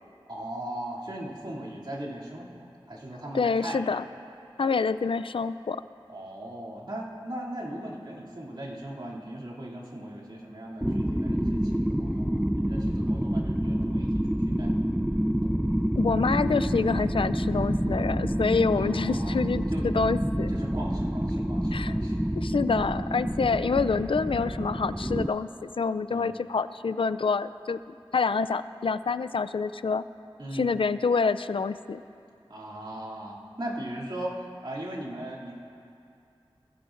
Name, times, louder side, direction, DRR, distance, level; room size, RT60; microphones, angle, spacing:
voice 1, 0.3-3.9 6.1-14.9 18.7-19.4 19.7-19.9 20.5-22.2 26.1-26.3 30.4-30.8 32.5-34.4 34.6-35.6, right 1 dB, 55° right, -6 dB, 2.7 m, -38 dB
voice 2, 3.3-4.0 4.6-5.8 16.0-20.5 21.7-21.9 22.3-25.5 25.8-27.8 28.1-30.0 30.5-32.0, left 5 dB, 65° left, 13 dB, 0.4 m, -27 dB
sound 1, 10.8-25.3, equal, 5° right, 0.4 m, -28 dB
21.5 x 15.0 x 2.6 m, 2.6 s
cardioid pair, 40°, 10 cm